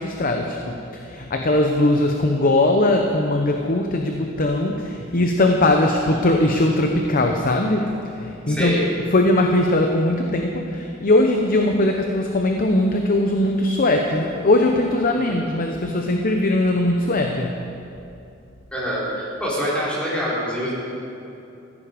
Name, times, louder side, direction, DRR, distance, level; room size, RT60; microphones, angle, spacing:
voice 1, 0.0-8.9 9.1-17.6, left 1 dB, 45° left, 3 dB, 0.9 m, -20 dB
voice 2, 8.5-8.8 15.1-15.4 18.7-20.7, equal, 5° left, -7 dB, 3.9 m, -25 dB
15.0 x 14.0 x 5.1 m, 2.7 s
head